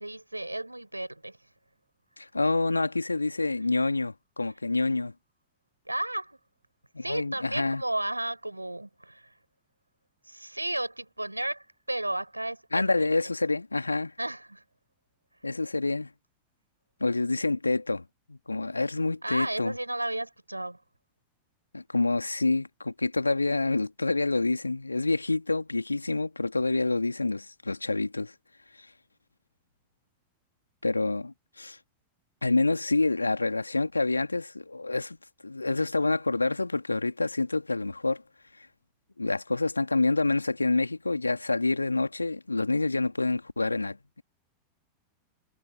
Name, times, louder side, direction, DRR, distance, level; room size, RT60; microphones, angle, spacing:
voice 1, 0.0-1.4 4.4-4.6 5.8-6.4 7.0-9.3 10.3-13.3 14.2-14.6 19.2-20.8, right 1 dB, 85° right, 5.0 m, -33 dB
voice 2, 2.2-5.1 6.9-7.8 12.7-14.1 15.4-16.1 17.0-18.0 18.3-19.7 21.7-28.3 30.8-31.8 32.4-35.2 35.4-38.2 39.2-44.2, left 3 dB, 80° left, 2.4 m, -27 dB
figure-of-eight pair, 90°, 0 cm